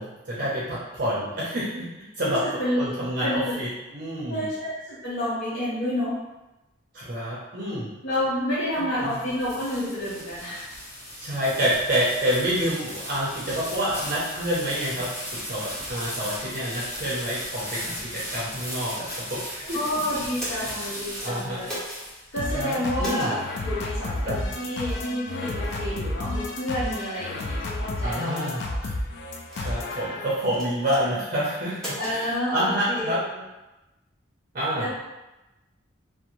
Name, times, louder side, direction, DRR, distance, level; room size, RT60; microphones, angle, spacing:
voice 1, 0.0-1.9 2.2-2.4 2.8-4.4 6.9-7.9 8.7-9.2 11.2-19.8 20.5-20.8 21.2-21.6 22.5-23.3 24.2-24.4 28.0-28.9 29.5-33.2 34.5-34.9, equal, 45° right, -7 dB, 0.5 m, -28 dB
voice 2, 3.2-3.6 4.3-6.2 8.0-10.6 19.7-21.7 22.3-28.7 32.0-33.1 34.8-34.9, left 1 dB, 75° left, -12 dB, 0.8 m, -29 dB
sound 1, 8.9-22.6, equal, 35° left, 1.1 m, -37 dB
sound 2, 19.0-19.5 20.2-20.9 21.6-22.0 23.0-23.3 24.1-24.3 24.9-25.1 25.6-25.8 26.4-26.5 27.1-27.5 28.2-28.6 29.4-30.0 30.5-31.0 31.7-32.2, equal, 5° left, 0.6 m, -37 dB
sound 3, 22.4-30.6, left 2 dB, 55° left, 0.3 m, -31 dB
2.5 x 2.1 x 2.9 m, 1.0 s
head